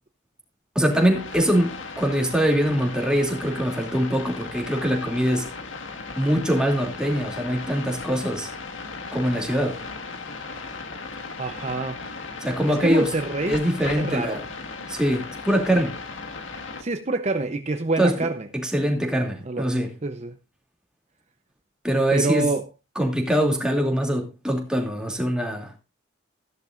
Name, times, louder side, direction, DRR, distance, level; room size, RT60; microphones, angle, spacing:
voice 1, 0.7-5.5 6.2-8.5 9.1-9.8 12.4-13.1 13.5-14.4 14.9-16.0 18.0-18.1 18.6-19.9 21.8-22.5 23.0-25.7, equal, 5° right, 2.7 m, -23 dB
sound 1, 0.9-16.8, left 4 dB, 80° left, 1.8 m, -36 dB
voice 2, 11.4-12.0 12.7-13.6 14.0-14.4 16.8-18.5 19.4-20.4 22.1-22.7, right 3 dB, 35° right, 0.8 m, -27 dB
15.0 x 12.0 x 2.5 m
head